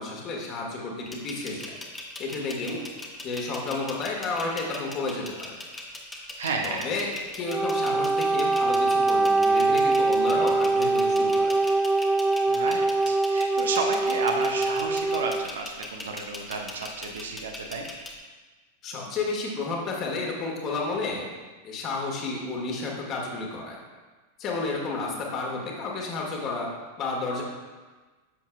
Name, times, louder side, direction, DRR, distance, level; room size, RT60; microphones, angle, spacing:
voice 1, 0.0-1.8 2.2-2.8 3.2-5.6 6.6-11.6 18.8-21.3 21.6-23.8 24.4-26.7 27.0-27.4, left 3 dB, 35° left, -1 dB, 1.9 m, -31 dB
sound 1, 1.1-18.2, left 2 dB, 10° left, 1.1 m, -40 dB
voice 2, 6.4-6.9 12.5-17.8, right 4 dB, 65° right, 2 dB, 1.0 m, -32 dB
Wind instrument woodwind instrument, 7.4-15.5, right 3 dB, 5° right, 0.4 m, -23 dB
10.5 x 7.4 x 2.5 m, 1.3 s
figure-of-eight pair, 90°, 0 cm